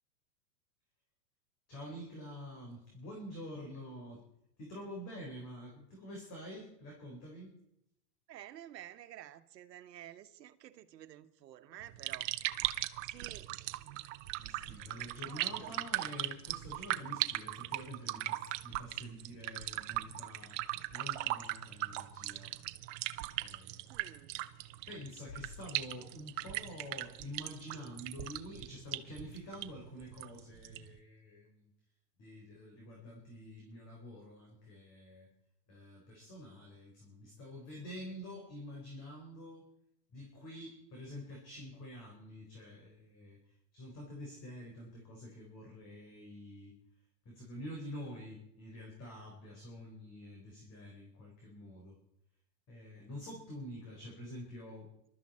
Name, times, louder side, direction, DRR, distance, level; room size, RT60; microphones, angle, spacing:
voice 1, 1.7-4.2 4.6-7.6 12.7-13.0 14.4-20.6 20.9-22.6 23.4-23.9 24.9-31.7 32.2-35.3 35.7-39.7 40.1-46.8 47.2-52.0 52.7-54.9, equal, 30° left, 4.3 m, -48 dB
voice 2, 8.3-13.5 15.2-15.9 16.8-17.1 23.9-24.3, right 12 dB, 80° right, 1.4 m, -52 dB
sound 1, 11.8-31.0, right 17 dB, 50° right, 0.9 m, -39 dB
22.5 x 13.0 x 4.3 m
supercardioid pair, 140°, 48 cm